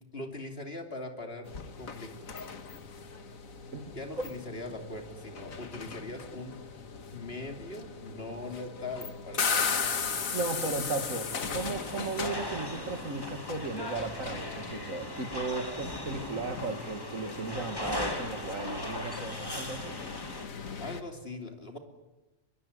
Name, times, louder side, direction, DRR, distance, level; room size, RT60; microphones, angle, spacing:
voice 1, 0.1-2.5 3.9-6.6 7.1-10.4 20.8-21.8, left 2 dB, 45° left, 4 dB, 3.3 m, -41 dB
sound 1, 1.5-21.0, left 5 dB, 90° left, 2.0 m, -38 dB
voice 2, 10.3-20.0, right 3 dB, 80° right, 7 dB, 2.6 m, -35 dB
sound 2, 11.6-20.5, left 1 dB, 15° left, 2.3 m, -39 dB
22.5 x 22.5 x 9.7 m, 1.1 s
omnidirectional pair, 1.4 m